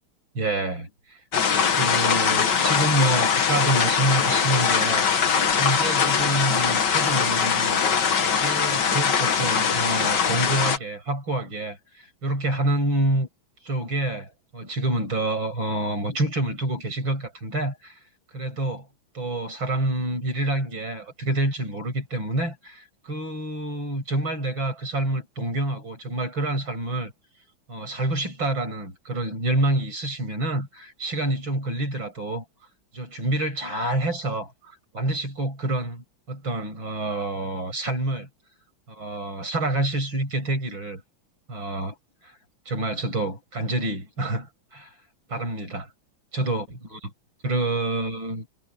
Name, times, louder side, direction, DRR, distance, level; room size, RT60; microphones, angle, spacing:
voice 1, 0.4-1.2 1.7-5.3 5.5-7.8 8.4-13.3 13.6-18.0 18.3-18.9 19.1-27.1 27.7-32.4 32.9-38.3 38.9-41.0 41.5-41.9 42.2-42.3 42.7-44.9 45.3-45.9 46.3-47.0 47.4-48.5, right 1 dB, 70° right, 8.9 m, -27 dB
sound 1, 1.3-10.8, left 6 dB, 60° left, 2.1 m, -22 dB
omnidirectional pair, 2.2 m